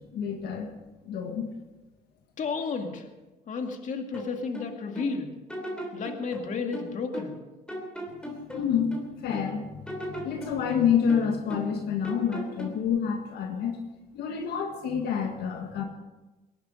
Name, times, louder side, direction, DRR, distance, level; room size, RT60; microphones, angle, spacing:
voice 1, 0.1-0.7 1.1-1.5 8.5-9.7 10.1-13.8 14.1-15.8, left 7 dB, 75° left, 4 dB, 1.7 m, -28 dB
voice 2, 2.4-3.0 3.5-5.3 5.9-7.4, left 4 dB, 45° left, 4 dB, 2.1 m, -32 dB
sound 1, 4.1-5.1 5.5-7.4 7.7-9.5 9.9-11.8 12.0-12.9, equal, 5° left, 3.2 m, -38 dB
19.5 x 11.5 x 5.2 m, 1.1 s
cardioid pair, 110°, 17 cm